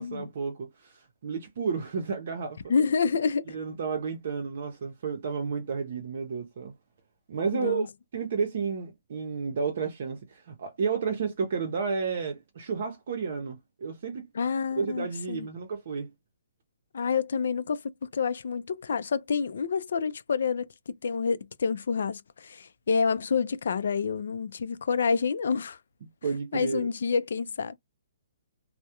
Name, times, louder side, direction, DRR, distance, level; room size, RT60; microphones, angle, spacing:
voice 1, 0.0-2.7 3.5-6.7 7.3-7.9 8.1-14.3 14.8-16.1 26.2-26.9, right 5 dB, 55° right, 0.6 m, -31 dB
voice 2, 2.7-3.6 7.5-7.9 14.3-15.5 16.9-25.8 26.5-27.8, left 5 dB, 70° left, 0.4 m, -28 dB
2.3 x 2.0 x 2.8 m
hypercardioid pair, 160°, 0 cm